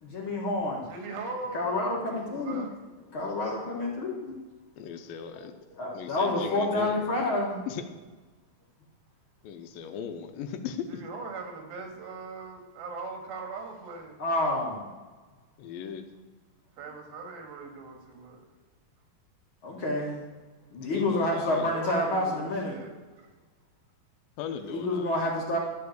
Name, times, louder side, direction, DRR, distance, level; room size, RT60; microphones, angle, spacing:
voice 1, 0.0-0.9 1.5-2.7 3.1-4.4 5.8-7.6 14.2-14.9 19.6-20.2 20.7-22.8 24.7-25.6, left 2 dB, 45° left, -3 dB, 1.9 m, -28 dB
voice 2, 0.9-2.7 10.9-14.2 16.8-18.5 21.5-22.9, right 3 dB, 80° right, 3 dB, 3.6 m, -40 dB
voice 3, 4.8-5.5 5.9-7.1 7.7-7.9 9.4-11.0 15.6-16.1 20.8-21.7 24.4-25.3, left 7 dB, 80° left, 8 dB, 2.4 m, -38 dB
12.5 x 5.8 x 7.9 m, 1.3 s
omnidirectional pair, 4.2 m